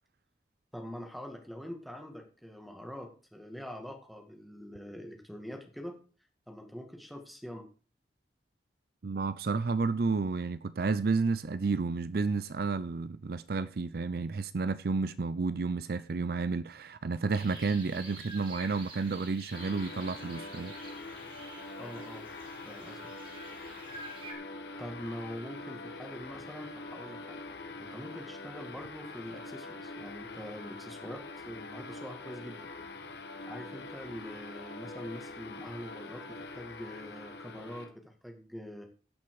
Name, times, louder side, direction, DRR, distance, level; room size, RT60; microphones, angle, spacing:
voice 1, 0.7-6.0 6.5-7.7 21.7-22.3 22.7-23.1 24.8-27.4 27.8-32.7 33.5-38.9, equal, ahead, 1.9 m, -44 dB
voice 2, 9.0-20.7, right 4 dB, 60° right, 0.5 m, -31 dB
sound 1, 17.3-24.3, right 2 dB, 30° right, 3.0 m, -48 dB
sound 2, 19.5-37.9, left 3 dB, 70° left, 1.6 m, -44 dB
16.5 x 5.9 x 4.8 m
head